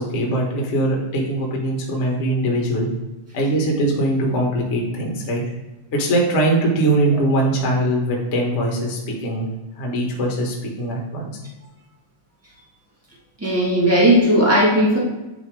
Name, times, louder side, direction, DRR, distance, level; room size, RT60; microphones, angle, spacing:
voice 1, 0.0-2.9 3.3-5.4 5.9-9.5 9.8-11.3, right 1 dB, 55° left, -1 dB, 0.7 m, -21 dB
voice 2, 13.4-15.0, equal, 15° right, -5 dB, 0.6 m, -16 dB
9.4 x 3.5 x 4.7 m, 1.1 s
omnidirectional pair, 3.5 m